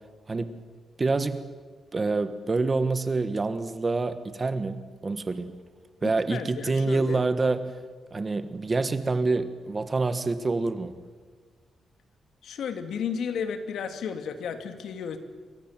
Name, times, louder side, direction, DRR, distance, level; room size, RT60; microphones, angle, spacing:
voice 1, 1.0-1.4 1.9-5.6 6.0-7.7 8.1-10.9, right 3 dB, 25° right, 11 dB, 1.3 m, -27 dB
voice 2, 6.0-7.2 12.4-15.2, left 7 dB, 80° left, 7 dB, 2.5 m, -33 dB
28.0 x 25.0 x 7.5 m, 1.5 s
wide cardioid pair, 170°, 0 cm